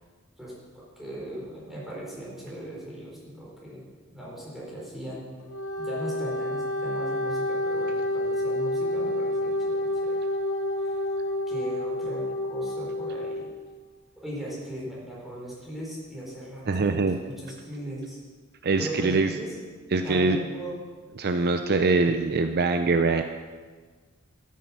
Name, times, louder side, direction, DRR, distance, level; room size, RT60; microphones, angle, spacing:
voice 1, 0.4-5.3 5.8-10.2 10.8-11.0 11.5-12.2 12.5-13.5 14.2-18.2 18.8-19.6 20.0-20.8, right 1 dB, ahead, -6 dB, 4.4 m, -38 dB
Wind instrument woodwind instrument, 5.4-13.5, left 1 dB, 60° left, 2.7 m, -29 dB
voice 2, 16.7-17.2 18.6-19.3 19.9-20.4 21.2-23.2, right 3 dB, 45° right, 7 dB, 0.6 m, -23 dB
13.0 x 9.5 x 6.1 m, 1.5 s
head